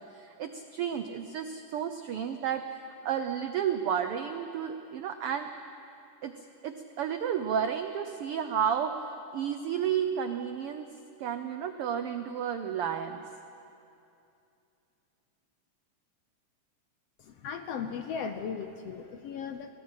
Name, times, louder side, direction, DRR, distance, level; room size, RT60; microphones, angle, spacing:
voice 1, 0.0-2.6 3.0-5.5 6.2-6.3 6.6-8.9 9.3-10.9 11.2-13.2, right 8 dB, 90° right, 8 dB, 1.2 m, -32 dB
voice 2, 17.2-19.7, left 6 dB, 70° left, 7 dB, 1.5 m, -37 dB
24.0 x 18.0 x 8.7 m, 2.7 s
omnidirectional pair, 3.6 m